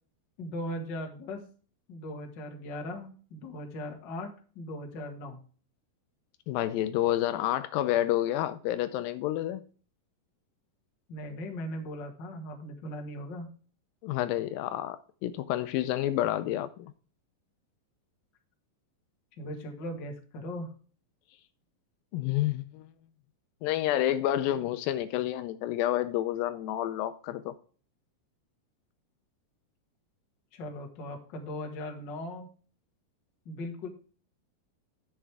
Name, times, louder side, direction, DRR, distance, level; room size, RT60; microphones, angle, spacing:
voice 1, 0.4-1.4 1.9-5.4 11.1-13.5 19.4-20.7 30.5-32.5 33.4-33.9, left 1 dB, 45° left, 1.6 m, -38 dB
voice 2, 6.5-9.6 14.0-16.9 22.1-22.9 23.6-27.5, left 13 dB, 80° left, 2.3 m, -29 dB
10.0 x 7.4 x 3.4 m
omnidirectional pair, 4.2 m